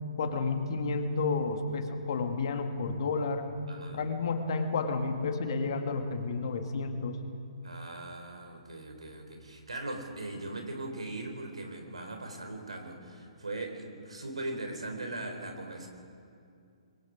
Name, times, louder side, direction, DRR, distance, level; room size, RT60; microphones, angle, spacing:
voice 1, 0.2-3.5 3.9-7.2, left 4 dB, 50° left, 5 dB, 2.1 m, -31 dB
voice 2, 3.7-4.0 7.6-15.9, right 2 dB, 75° right, 4 dB, 3.9 m, -40 dB
25.5 x 22.0 x 5.1 m, 2.5 s
figure-of-eight pair, 125°, 3 cm